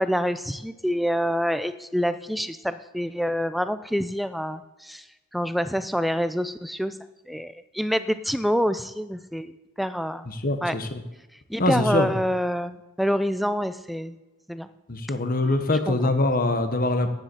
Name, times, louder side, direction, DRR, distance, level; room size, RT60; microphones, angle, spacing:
voice 1, 0.0-5.0 5.3-7.0 7.3-9.5 9.8-10.3 10.6-10.7 11.5-14.2 14.5-14.7 15.9-16.1, equal, ahead, 12 dB, 0.3 m, -26 dB
voice 2, 10.2-11.0 11.6-12.1 14.9-17.1, left 2 dB, 40° left, 7 dB, 1.1 m, -23 dB
10.0 x 7.3 x 7.9 m, 1.1 s
head